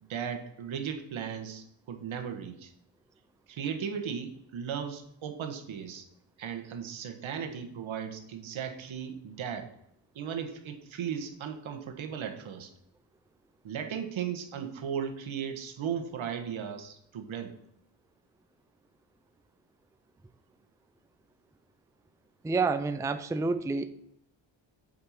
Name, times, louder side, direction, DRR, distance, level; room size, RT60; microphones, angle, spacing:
voice 1, 0.0-2.7 3.5-6.1 6.4-9.7 10.1-12.7 13.6-17.5, right 7 dB, 80° right, 6 dB, 1.5 m, -36 dB
voice 2, 22.4-23.9, right 4 dB, 5° right, 10 dB, 0.4 m, -28 dB
7.7 x 5.5 x 5.7 m, 0.74 s
wide cardioid pair, 125°, 46 cm